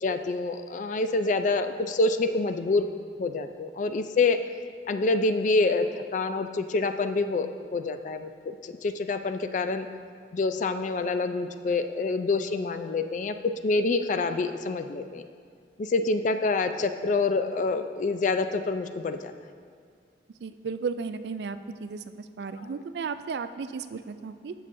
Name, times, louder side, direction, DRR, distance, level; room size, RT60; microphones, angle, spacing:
voice 1, 0.0-2.8 3.2-4.4 4.9-8.3 8.6-9.9 10.3-13.3 13.6-15.3 15.8-19.3 22.6-22.8, left 3 dB, 45° left, 9 dB, 0.3 m, -27 dB
voice 2, 20.4-22.0 22.4-24.5, right 5 dB, 65° right, 11 dB, 0.3 m, -34 dB
13.0 x 6.5 x 2.6 m, 2.1 s
head